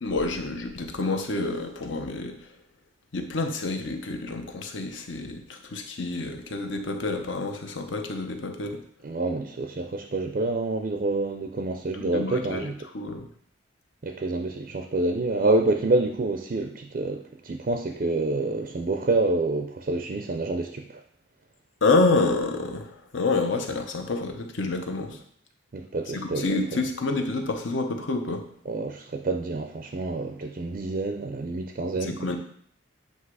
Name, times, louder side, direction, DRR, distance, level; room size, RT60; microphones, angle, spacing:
voice 1, 0.0-2.5 3.1-8.8 12.0-13.3 21.8-25.2 26.1-28.4 32.0-32.4, left 3 dB, 70° left, 5 dB, 0.8 m, -28 dB
voice 2, 9.0-12.9 14.0-21.0 25.7-26.6 28.7-32.4, right 2 dB, 45° right, 5 dB, 0.4 m, -27 dB
8.0 x 2.8 x 4.7 m, 0.64 s
head